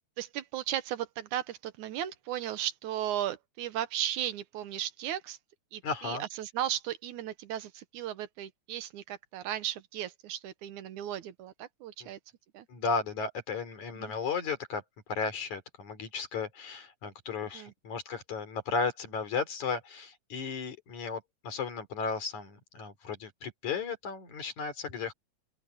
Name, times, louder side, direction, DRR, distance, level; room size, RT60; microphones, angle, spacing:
voice 1, 0.2-5.4 5.7-12.2 12.5-12.7 14.0-14.1 17.5-17.7, right 11 dB, 85° right, 2.6 m, -36 dB
voice 2, 5.8-6.2 12.0-12.1 12.7-14.8 15.1-25.1, left 5 dB, 75° left, 4.9 m, -34 dB
open air
omnidirectional pair, 3.4 m